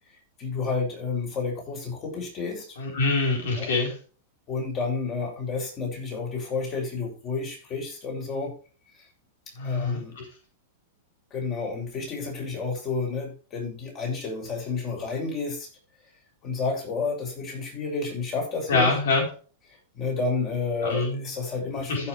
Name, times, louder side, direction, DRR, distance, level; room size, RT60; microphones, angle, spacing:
voice 1, 0.4-2.8 3.5-3.7 4.5-8.5 9.0-9.1 9.5-10.2 11.3-15.7 16.4-18.9 19.9-22.1, left 4 dB, 30° left, 1 dB, 7.1 m, -30 dB
voice 2, 2.8-3.9 9.6-10.2 18.7-19.2 20.8-21.3 21.9-22.0, left 3 dB, 80° left, 1 dB, 4.5 m, -25 dB
15.5 x 7.3 x 3.4 m, 0.37 s
supercardioid pair, 150°, 0 cm